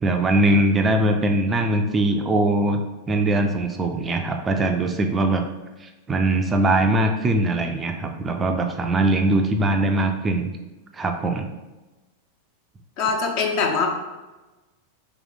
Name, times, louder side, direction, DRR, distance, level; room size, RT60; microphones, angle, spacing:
voice 1, 0.0-2.8 3.1-5.5 5.8-10.5 10.9-11.5, right 1 dB, 20° right, 4 dB, 0.4 m, -21 dB
voice 2, 13.0-13.9, left 4 dB, 45° left, 3 dB, 0.6 m, -22 dB
3.2 x 3.0 x 3.8 m, 1.1 s
figure-of-eight pair, 90°, 0 cm